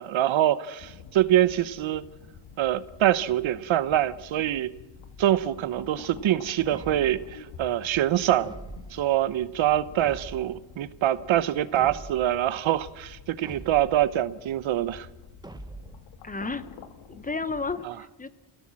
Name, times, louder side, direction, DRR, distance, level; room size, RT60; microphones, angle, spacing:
voice 1, 0.0-2.0 2.6-4.7 5.2-8.5 8.9-15.1 17.8-17.9, right 12 dB, 85° right, 1.0 m, -25 dB
sound 1, 0.8-17.7, left 6 dB, 80° left, 1.8 m, -48 dB
sound 2, 6.7-7.4 8.4-9.0 10.0-10.7 11.8-12.4 13.4-14.1 15.4-16.1, right 2 dB, 10° right, 1.0 m, -43 dB
voice 2, 16.2-16.7 17.1-18.3, left 3 dB, 20° left, 0.9 m, -32 dB
29.5 x 17.0 x 7.6 m
wide cardioid pair, 155°, 46 cm